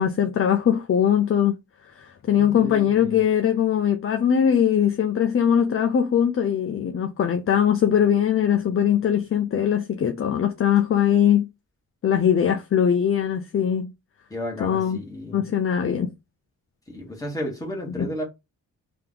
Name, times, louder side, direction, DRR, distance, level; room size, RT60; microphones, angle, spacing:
voice 1, 0.0-1.6 1.9-11.5 12.0-13.9 14.6-15.0 15.3-16.1 18.0-18.1, left 9 dB, 40° left, 0.5 m, -21 dB
voice 2, 2.4-3.2 14.3-15.4 16.9-18.2, equal, 10° left, 1.7 m, -33 dB
3.5 x 2.9 x 3.8 m
wide cardioid pair, 125°, 33 cm